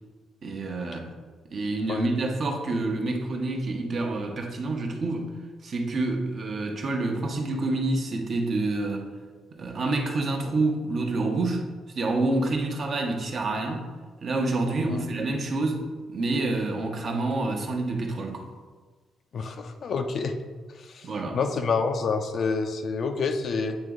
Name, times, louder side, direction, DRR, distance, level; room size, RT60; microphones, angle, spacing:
voice 1, 0.4-1.1 1.5-5.3 5.6-9.1 9.6-11.6 11.9-13.9 14.2-18.5 21.0-21.4, right 2 dB, 50° right, 2 dB, 0.9 m, -28 dB
voice 2, 19.3-20.4 20.8-21.1 21.3-23.8, left 4 dB, 55° left, 6 dB, 0.5 m, -28 dB
8.9 x 3.0 x 3.7 m, 1.4 s
cardioid pair, 90°, 0 cm